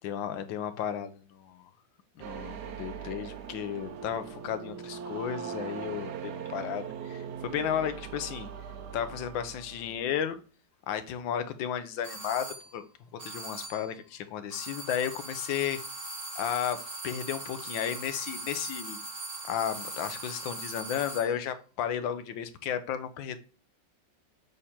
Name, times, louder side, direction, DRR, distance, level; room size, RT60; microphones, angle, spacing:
voice 1, 0.0-1.7 2.2-8.5 8.9-10.4 10.9-12.5 12.7-12.8 13.2-15.8 16.3-16.8 17.0-19.0 19.5-23.4, left 9 dB, 85° left, 1.5 m, -33 dB
sound 1, 2.2-10.1, right 7 dB, 70° right, 1.1 m, -40 dB
sound 2, 12.0-12.7 13.2-13.9 14.5-21.4, right 2 dB, 20° right, 2.8 m, -40 dB
6.4 x 3.7 x 4.2 m
omnidirectional pair, 2.0 m